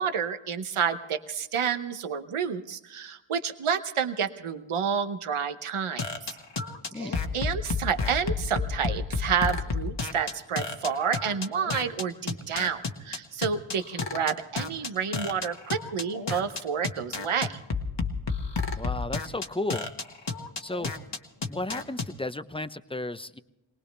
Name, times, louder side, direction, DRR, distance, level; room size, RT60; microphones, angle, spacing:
voice 1, 0.0-6.1 7.0-17.6, right 7 dB, 90° right, 9 dB, 0.9 m, -29 dB
sound 1, 6.0-22.1, left 4 dB, 60° left, 1.5 m, -30 dB
voice 2, 18.8-19.9 20.6-20.9 21.5-23.4, left 2 dB, 10° left, 12 dB, 0.7 m, -33 dB
23.0 x 19.0 x 3.4 m, 0.98 s
cardioid pair, 45°, 49 cm